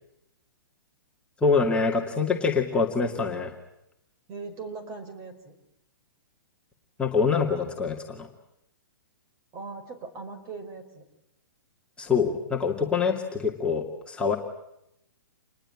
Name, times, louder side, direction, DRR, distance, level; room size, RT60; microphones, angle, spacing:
voice 1, 1.4-3.5 7.0-8.3 12.0-14.4, left 5 dB, 10° left, -2 dB, 2.4 m, -25 dB
voice 2, 4.3-5.6 9.5-11.0, right 4 dB, 30° right, 6 dB, 5.4 m, -39 dB
28.0 x 20.5 x 9.0 m, 0.84 s
hypercardioid pair, 125°, 12 cm